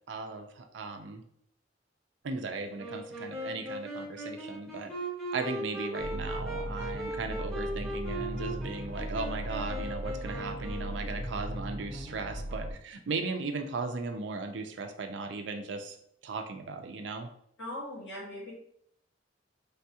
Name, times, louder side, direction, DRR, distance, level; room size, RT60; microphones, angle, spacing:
voice 1, 0.1-1.2 2.2-4.9 5.3-16.0 16.2-17.3, right 3 dB, 75° right, 5 dB, 0.4 m, -37 dB
Wind instrument woodwind instrument, 2.8-11.5, right 1 dB, ahead, 1.2 m, -39 dB
sound 1, 6.0-12.7, equal, 35° right, 0.7 m, -38 dB
voice 2, 17.6-18.5, left 1 dB, 80° left, -6 dB, 1.4 m, -39 dB
3.3 x 2.7 x 2.3 m, 0.69 s
head